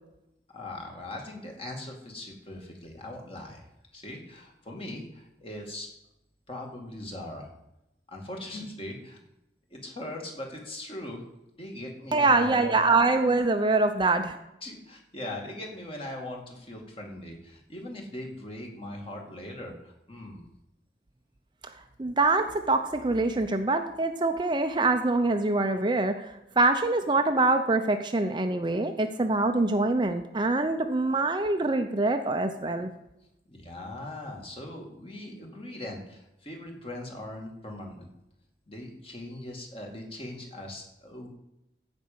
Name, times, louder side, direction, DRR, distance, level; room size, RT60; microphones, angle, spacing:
voice 1, 0.5-3.6 3.9-5.9 6.5-7.5 8.1-9.2 9.7-11.2 11.6-12.8 14.6-20.4 33.5-38.1 38.7-41.3, left 1 dB, 30° left, 1 dB, 2.5 m, -40 dB
voice 2, 12.1-14.4 22.0-26.3 26.6-32.9, right 3 dB, 25° right, 6 dB, 0.6 m, -24 dB
15.5 x 5.3 x 6.9 m, 0.88 s
head